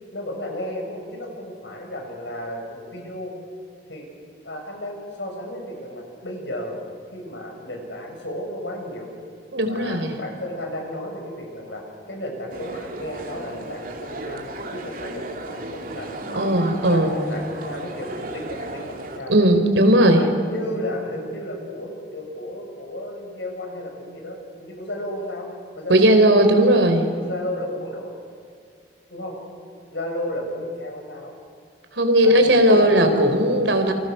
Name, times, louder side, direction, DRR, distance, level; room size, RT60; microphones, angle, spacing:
voice 1, 0.1-3.3 3.9-4.1 4.4-6.8 7.1-9.1 9.6-16.4 16.9-19.4 19.9-25.5 25.7-26.8 27.1-28.1 29.1-29.3 29.9-31.4 32.2-33.4, left 1 dB, 80° left, 1 dB, 7.2 m, -33 dB
voice 2, 9.5-10.2 16.4-17.2 19.3-20.2 25.9-27.0 31.9-33.9, right 1 dB, 85° right, 6 dB, 3.8 m, -17 dB
sound 1, 12.5-19.2, right 1 dB, 50° right, 2.8 m, -35 dB
28.5 x 26.0 x 6.7 m, 2.3 s
head